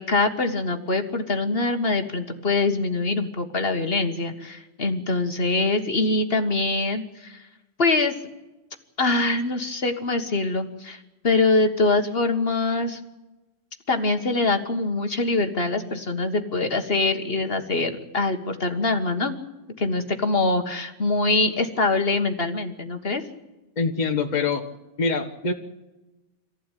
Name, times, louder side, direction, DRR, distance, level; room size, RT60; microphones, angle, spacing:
voice 1, 0.0-7.4 7.8-8.1 9.0-13.0 13.9-19.4 19.8-23.2, left 3 dB, 55° left, 6 dB, 1.7 m, -24 dB
voice 2, 23.8-24.6 25.0-25.5, left 4 dB, 35° left, 4 dB, 1.5 m, -24 dB
24.5 x 15.5 x 9.1 m, 1.1 s
omnidirectional pair, 1.3 m